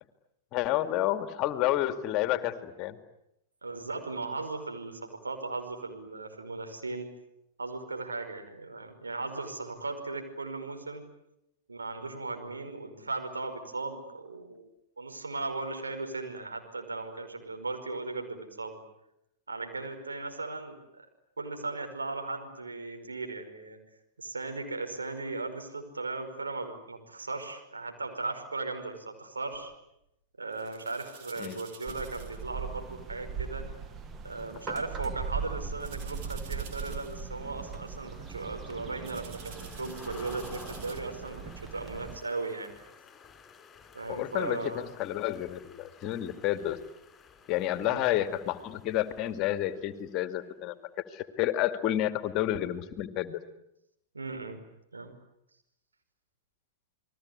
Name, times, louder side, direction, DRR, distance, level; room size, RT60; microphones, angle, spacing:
voice 1, 0.5-3.0 31.4-31.6 44.1-46.8 47.5-50.8 51.1-53.4, left 13 dB, 40° left, 10 dB, 2.3 m, -30 dB
voice 2, 3.6-7.1 7.6-11.0 11.7-14.6 15.0-18.8 19.5-21.0 21.4-23.8 24.2-29.7 30.4-33.7 34.2-41.4 41.7-42.7 43.9-44.8 47.8-48.1 54.1-54.6 54.9-55.1, right 3 dB, 85° right, 5 dB, 5.4 m, -37 dB
sound 1, 29.5-29.7 30.5-32.5 32.9-33.0 34.3-34.5 35.8-37.3 37.6-37.9 39.0-41.0, right 6 dB, 50° right, 4.9 m, -50 dB
sound 2, 31.9-42.2, right 6 dB, 25° right, 1.9 m, -40 dB
sound 3, 34.6-50.2, left 5 dB, 20° left, 6.1 m, -54 dB
29.5 x 21.0 x 9.7 m, 0.82 s
figure-of-eight pair, 100°, 0 cm